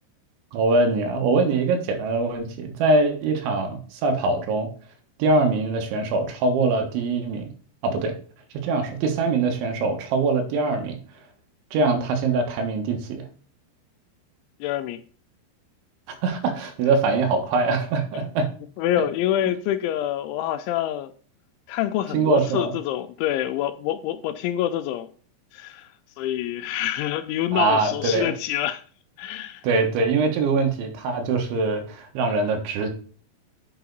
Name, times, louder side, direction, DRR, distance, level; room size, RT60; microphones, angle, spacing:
voice 1, 0.5-4.7 5.2-7.5 7.8-8.2 8.5-11.0 11.7-13.3 16.2-18.5 22.1-22.7 27.5-28.3 29.6-32.9, right 3 dB, 75° right, 3.7 m, -23 dB
voice 2, 14.6-15.0 18.1-18.3 18.8-21.1 21.7-25.1 25.5-25.9 26.2-28.8 29.2-29.6, left 12 dB, 85° left, 2.9 m, -26 dB
8.8 x 5.7 x 4.0 m
omnidirectional pair, 5.5 m